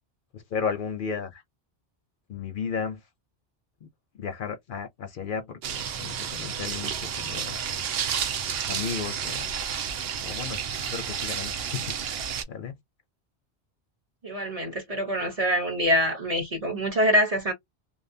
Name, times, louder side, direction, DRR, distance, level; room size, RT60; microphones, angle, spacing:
voice 1, 0.3-1.4 2.3-3.0 3.8-3.9 4.2-7.6 8.7-9.5 10.2-10.6 10.9-11.9 12.5-12.8, left 6 dB, 60° left, 0.6 m, -34 dB
sound 1, 5.6-12.4, right 7 dB, 70° right, 0.8 m, -31 dB
voice 2, 14.2-17.5, equal, 40° right, 0.8 m, -25 dB
2.6 x 2.3 x 2.5 m
omnidirectional pair, 1.1 m